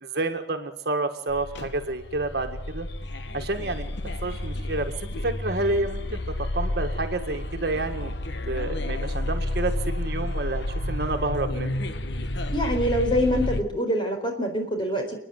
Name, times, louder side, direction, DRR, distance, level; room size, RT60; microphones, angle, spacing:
voice 1, 0.0-2.9 3.3-8.1 8.5-11.9, right 2 dB, 55° right, 6 dB, 1.7 m, -29 dB
sound 1, 1.3-13.6, left 1 dB, 60° left, 1.1 m, -30 dB
voice 2, 12.5-15.2, equal, 25° left, 3 dB, 4.4 m, -25 dB
29.0 x 10.5 x 9.3 m, 0.79 s
head